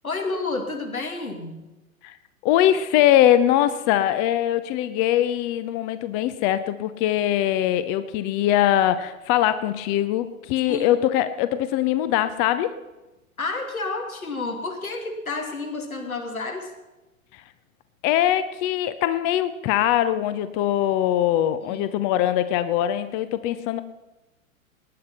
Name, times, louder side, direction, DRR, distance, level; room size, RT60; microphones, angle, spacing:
voice 1, 0.0-1.6 10.7-10.9 13.4-16.7 21.7-21.9, left 3 dB, 85° left, 4 dB, 2.5 m, -30 dB
voice 2, 2.4-12.7 17.3-17.4 18.0-23.8, left 12 dB, 30° left, 13 dB, 0.7 m, -22 dB
18.5 x 9.6 x 5.6 m, 1.0 s
figure-of-eight pair, 100°, 42 cm